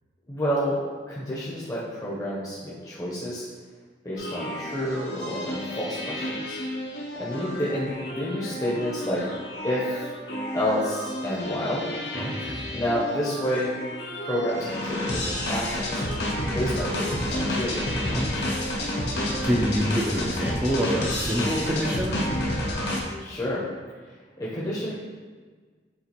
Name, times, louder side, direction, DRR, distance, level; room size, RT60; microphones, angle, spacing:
voice 1, 0.3-0.8 1.1-3.4 4.0-6.6 7.2-9.2 9.6-9.8 10.5-11.9 12.7-13.7 14.2-15.0 15.3-16.0 16.5-17.9 23.2-23.6 24.4-24.9, equal, 20° left, -7 dB, 0.7 m, -29 dB
sound 1, 4.2-23.0, left 1 dB, 65° left, 0.7 m, -30 dB
voice 2, 12.1-12.7 18.1-18.6 19.4-22.1, equal, 10° right, -5 dB, 0.4 m, -27 dB
6.6 x 2.5 x 2.9 m, 1.5 s
head